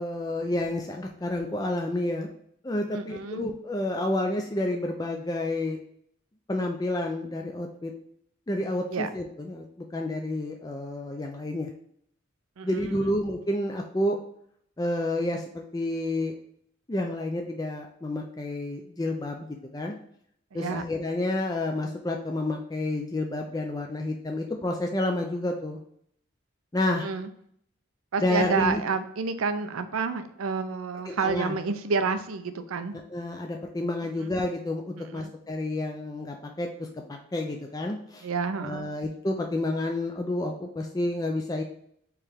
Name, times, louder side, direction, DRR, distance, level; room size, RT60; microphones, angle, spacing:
voice 1, 0.0-2.3 2.6-5.8 6.5-7.9 8.5-9.7 9.9-11.7 12.6-14.2 14.8-16.3 16.9-20.0 20.5-25.8 26.7-27.1 28.2-28.8 31.1-31.6 32.9-38.3 38.6-41.6, left 1 dB, 20° left, 2 dB, 0.4 m, -30 dB
voice 2, 2.9-3.5 8.9-9.1 12.6-12.9 20.5-20.8 27.0-27.3 28.1-32.9 34.2-34.3 35.1-35.3 38.2-38.9, right 4 dB, 90° right, 9 dB, 0.5 m, -29 dB
4.6 x 3.2 x 3.5 m, 0.68 s
head